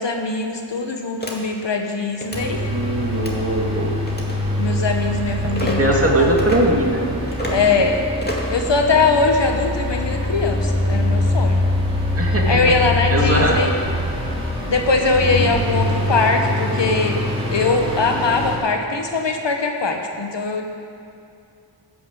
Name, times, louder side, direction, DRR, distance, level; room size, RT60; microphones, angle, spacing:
voice 1, 0.0-2.6 4.6-5.9 6.1-6.3 7.5-8.0 8.5-11.6 12.5-13.7 14.7-17.2 17.5-20.6, left 3 dB, 70° left, 3 dB, 1.3 m, -21 dB
sound 1, 1.2-1.3 2.1-2.4 3.1-3.4 4.1-4.4 5.5-5.8 6.4-6.6 7.3-7.6 8.2-8.6, left 1 dB, 20° left, 2.2 m, -28 dB
sound 2, 2.3-18.6, left 1 dB, 10° right, 3.2 m, -23 dB
voice 2, 2.7-4.1 5.4-7.6 12.2-12.7 13.1-13.7, right 1 dB, 30° right, -2 dB, 2.4 m, -21 dB
13.5 x 5.7 x 8.1 m, 2.6 s
cardioid pair, 45°, 45 cm